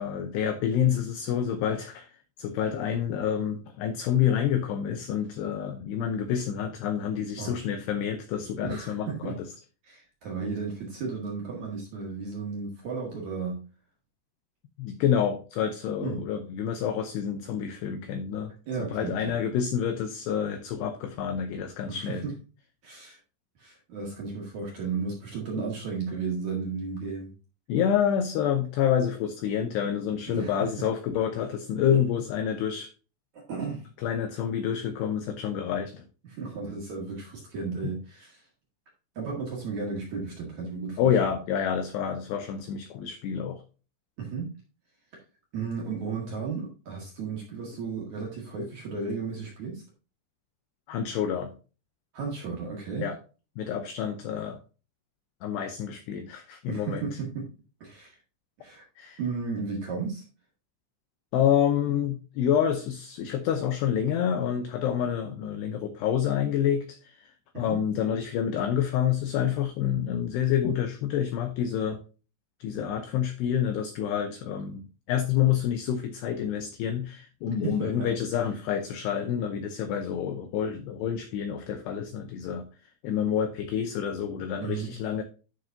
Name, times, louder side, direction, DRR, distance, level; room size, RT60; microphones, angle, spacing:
voice 1, 0.0-2.1 2.4-9.5 14.8-18.5 18.8-22.2 27.7-32.9 34.0-36.0 41.0-43.6 50.9-51.5 53.0-53.2 53.6-54.6 55.4-57.1 59.0-59.2 61.3-67.3 67.6-72.0 72.6-82.7 83.0-85.2, left 9 dB, 85° left, 8 dB, 2.4 m, -28 dB
voice 2, 8.6-9.4 9.8-13.6 16.0-16.2 18.7-19.4 21.9-22.3 22.8-23.2 23.6-27.3 30.3-30.7 33.5-33.9 36.2-38.4 39.2-41.1 44.2-44.5 45.5-49.8 52.1-53.0 56.7-57.5 57.8-58.2 58.6-58.8 59.2-60.2 67.5-67.8 77.6-78.1 84.6-84.9, right 5 dB, 50° right, -2 dB, 2.4 m, -34 dB
11.5 x 6.2 x 2.7 m, 0.34 s
omnidirectional pair, 5.7 m